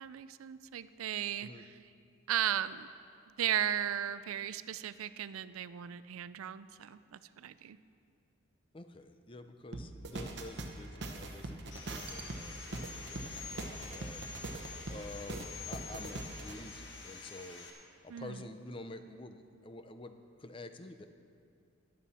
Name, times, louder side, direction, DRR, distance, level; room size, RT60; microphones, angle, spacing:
voice 1, 0.0-1.7 2.3-2.9 3.4-7.8 18.1-18.4, right 10 dB, 90° right, 15 dB, 0.4 m, -36 dB
voice 2, 8.7-17.7 18.0-21.1, left 2 dB, 25° left, 8 dB, 0.5 m, -49 dB
sound 1, 9.7-16.6, right 2 dB, 55° right, 0.9 m, -42 dB
Sawing, 11.7-17.7, left 4 dB, 55° left, 1.5 m, -47 dB
14.0 x 11.0 x 4.2 m, 2.4 s
head